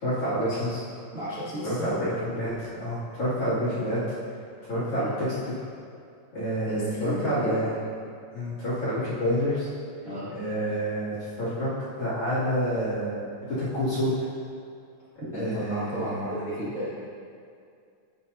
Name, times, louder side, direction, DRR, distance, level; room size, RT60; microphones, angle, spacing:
voice 1, 0.0-0.8 1.6-4.0 4.7-5.3 6.3-7.7 8.3-9.7 10.3-11.7 12.0-13.2 13.6-14.1 15.3-16.4, equal, 40° left, -10 dB, 2.4 m, -28 dB
voice 2, 1.1-1.9 5.0-5.1 6.6-7.7 10.0-10.3 15.2-16.9, equal, 70° right, -13 dB, 0.7 m, -34 dB
15.5 x 6.6 x 2.8 m, 2.3 s
omnidirectional pair, 5.9 m